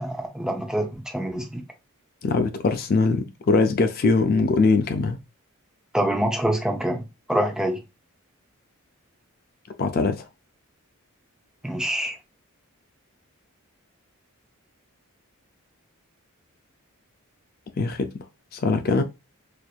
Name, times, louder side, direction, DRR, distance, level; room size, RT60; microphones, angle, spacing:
voice 1, 0.0-1.6 5.9-7.0 7.3-7.8 11.6-12.2, right 1 dB, 5° right, 0.5 m, -25 dB
voice 2, 2.2-5.2 9.8-10.3 17.8-18.3 18.5-19.0, left 3 dB, 45° left, 0.4 m, -22 dB
4.3 x 2.6 x 2.3 m
head